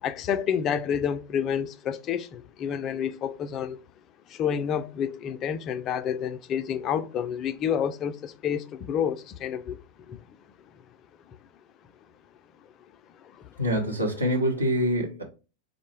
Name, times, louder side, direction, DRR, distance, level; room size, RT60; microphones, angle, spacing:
voice 1, 0.0-3.8 4.3-9.8 10.1-10.2 11.3-11.4 13.1-13.7, left 8 dB, 35° left, 0.3 m, -29 dB
voice 2, 13.6-15.2, equal, 85° right, 0.8 m, -25 dB
3.7 x 2.1 x 3.3 m
figure-of-eight pair, 90°, 0 cm